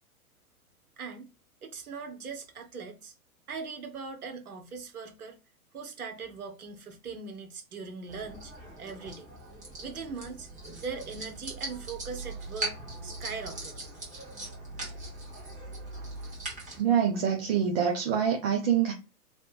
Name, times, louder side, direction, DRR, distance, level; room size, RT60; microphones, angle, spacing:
voice 1, 1.0-1.3 1.6-3.1 3.5-5.4 5.7-8.5 8.8-9.3 9.8-10.5 10.8-12.8 13.0-13.8, right 5 dB, 75° right, 1.1 m, -40 dB
sound 1, 8.1-16.8, right 2 dB, 15° right, 1.7 m, -40 dB
voice 2, 16.8-18.9, right 8 dB, 40° right, 0.8 m, -25 dB
3.3 x 2.6 x 3.2 m
hypercardioid pair, 115°, 45 cm